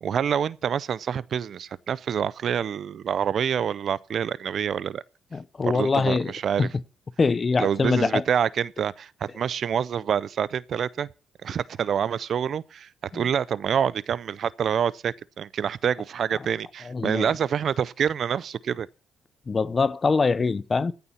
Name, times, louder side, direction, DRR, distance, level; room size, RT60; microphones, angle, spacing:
voice 1, 0.0-5.0 5.6-6.7 7.6-11.1 11.4-18.9, right 8 dB, 60° right, 0.5 m, -27 dB
voice 2, 5.3-6.3 6.6-6.7 7.2-8.2 13.1-13.3 16.9-17.3 19.5-20.9, left 4 dB, 30° left, 0.6 m, -23 dB
15.5 x 7.0 x 5.7 m
cardioid pair, 90°, 0 cm